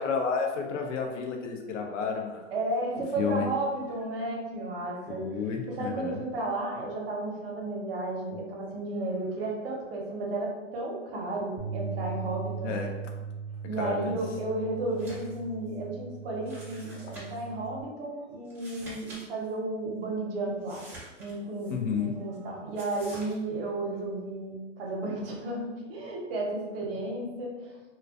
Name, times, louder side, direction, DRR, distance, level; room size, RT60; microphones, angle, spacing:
voice 1, 0.0-2.5 3.2-3.5 5.1-6.2 12.6-12.9 13.8-14.1 16.9-17.2 21.7-22.1, left 5 dB, 75° left, 2 dB, 0.6 m, -31 dB
voice 2, 2.5-5.2 5.7-12.7 13.6-20.8 21.2-25.6 25.9-27.7, right 2 dB, 50° right, -1 dB, 0.7 m, -33 dB
Bass guitar, 11.6-17.8, right 6 dB, 85° right, 0.6 m, -39 dB
sound 1, 14.9-15.4 15.7-15.8 16.4-17.5 18.4-19.2 19.5-19.6 20.6-21.7 22.7-23.3, right 1 dB, 5° right, 0.4 m, -47 dB
2.4 x 2.2 x 2.4 m, 1.2 s
hypercardioid pair, 135°, 37 cm